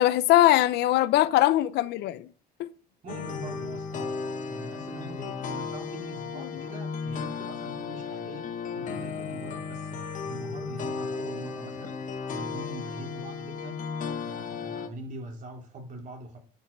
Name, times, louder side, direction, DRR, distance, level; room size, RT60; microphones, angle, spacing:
voice 1, 0.0-2.3 2.6-2.7 6.4-6.6, left 14 dB, 80° left, 0.7 m, -22 dB
voice 2, 3.0-4.1 4.5-13.9 14.3-16.4, right 1 dB, 50° right, 3.2 m, -42 dB
sound 1, 3.1-14.9, left 5 dB, 50° left, 1.2 m, -35 dB
10.0 x 5.6 x 5.3 m
cardioid pair, 110°, 17 cm